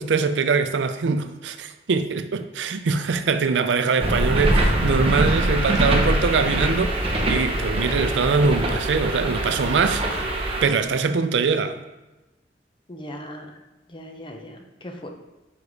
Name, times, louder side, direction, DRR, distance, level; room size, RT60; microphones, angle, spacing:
voice 1, 0.0-10.2 10.6-11.8, right 5 dB, 90° right, 0.5 m, -23 dB
sound 1, 4.0-10.7, right 1 dB, 30° right, 0.9 m, -23 dB
voice 2, 12.9-13.6 13.9-15.1, equal, 30° left, 0.7 m, -38 dB
5.4 x 4.9 x 4.8 m
head